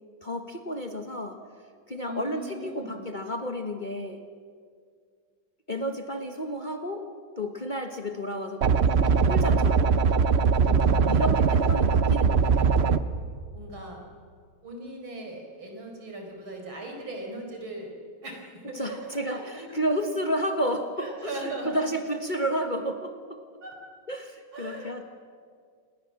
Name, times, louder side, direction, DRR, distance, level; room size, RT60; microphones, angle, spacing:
voice 1, 0.2-1.4 1.9-4.2 5.7-7.1 7.4-8.9 9.3-10.0 10.7-12.8 18.6-23.4 24.1-25.0, equal, 30° left, 5 dB, 1.2 m, -31 dB
voice 2, 2.0-3.0 10.7-11.4 13.5-14.0 14.6-17.9 18.2-19.8 21.0-21.9 23.6-23.8 24.5-25.0, right 2 dB, 90° right, 2 dB, 5.5 m, -39 dB
sound 1, 8.6-13.0, right 5 dB, 60° right, 0.6 m, -21 dB
28.0 x 20.0 x 7.5 m, 2.1 s
omnidirectional pair, 2.2 m